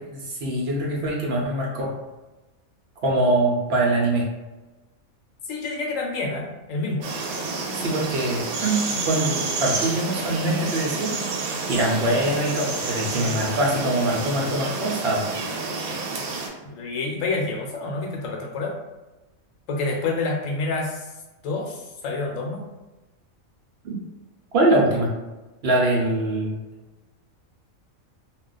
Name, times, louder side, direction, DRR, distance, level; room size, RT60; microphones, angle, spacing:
voice 1, 0.1-1.9 3.0-4.2 7.7-11.1 11.7-15.2 23.8-23.9 24.5-25.1 25.6-26.6, right 1 dB, 55° right, -2 dB, 0.8 m, -23 dB
voice 2, 5.5-7.1 13.2-13.4 16.6-18.7 19.7-21.1 21.4-22.6, left 3 dB, 70° left, 0 dB, 1.0 m, -28 dB
sound 1, 7.0-16.5, right 3 dB, 90° right, 1.1 m, -29 dB
2.3 x 2.3 x 3.8 m, 1.1 s
omnidirectional pair, 1.4 m